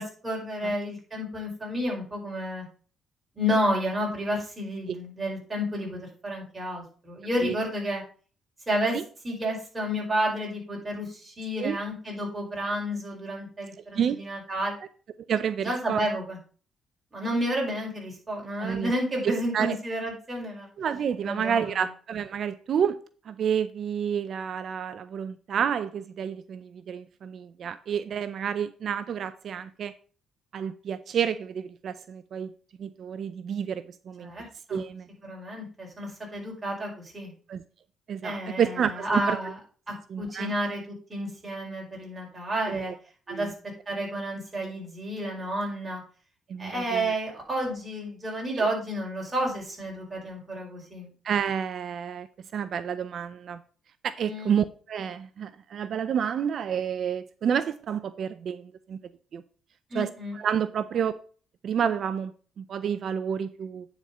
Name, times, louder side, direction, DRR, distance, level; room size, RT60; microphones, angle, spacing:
voice 1, 0.0-2.6 3.4-8.0 8.7-9.0 9.2-14.7 15.6-16.4 17.1-20.7 21.2-21.7 34.2-34.8 35.2-37.3 38.2-39.5 39.9-40.8 41.1-42.9 43.3-43.5 43.9-46.0 46.6-51.1 54.2-54.5 59.9-60.3, equal, 25° right, -2 dB, 4.8 m, -31 dB
voice 2, 15.3-16.1 18.6-18.9 19.2-19.8 20.8-23.0 23.3-29.9 30.5-32.5 32.8-34.3 34.7-35.1 37.5-37.6 38.1-39.4 40.1-40.5 42.7-42.9 43.3-43.5 46.5-47.1 48.6-48.7 51.2-52.3 52.5-53.6 54.0-59.0 59.3-59.4 59.9-61.2 61.6-62.3 62.6-63.9, right 8 dB, 60° right, 13 dB, 0.5 m, -29 dB
9.5 x 4.4 x 5.4 m, 0.40 s
cardioid pair, 90°, 0 cm